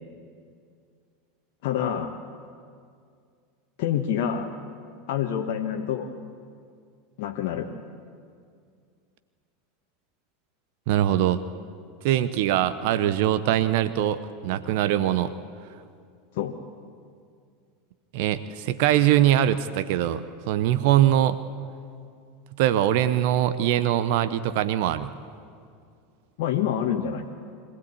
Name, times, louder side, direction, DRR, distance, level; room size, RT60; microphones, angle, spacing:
voice 1, 1.6-2.1 3.8-4.5 5.1-6.1 7.2-7.7 16.3-16.6 26.4-27.3, left 9 dB, 55° left, 2 dB, 1.3 m, -27 dB
voice 2, 10.9-11.4 12.0-15.3 18.1-21.4 22.6-25.1, right 12 dB, 55° right, 13 dB, 0.8 m, -22 dB
24.5 x 16.5 x 8.5 m, 2.3 s
figure-of-eight pair, 80°, 0 cm